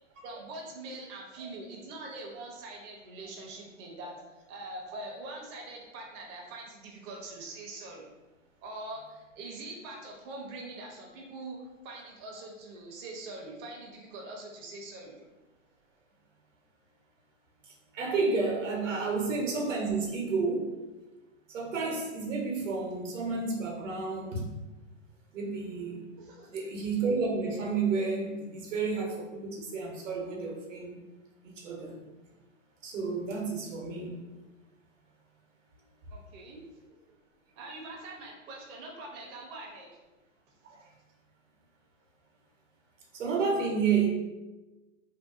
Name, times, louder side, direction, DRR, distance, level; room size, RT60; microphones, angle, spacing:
voice 1, 0.2-8.1 8.6-15.2 26.2-26.5 36.1-36.6 37.6-39.9, right 2 dB, 30° right, -1 dB, 0.5 m, -43 dB
voice 2, 17.7-20.7 21.5-24.5 25.3-26.0 26.5-30.9 31.4-32.0 32.8-34.2 40.7-40.8 43.1-44.1, right 4 dB, 75° right, -1 dB, 0.9 m, -31 dB
2.6 x 2.3 x 2.4 m, 1.1 s
hypercardioid pair, 110°, 38 cm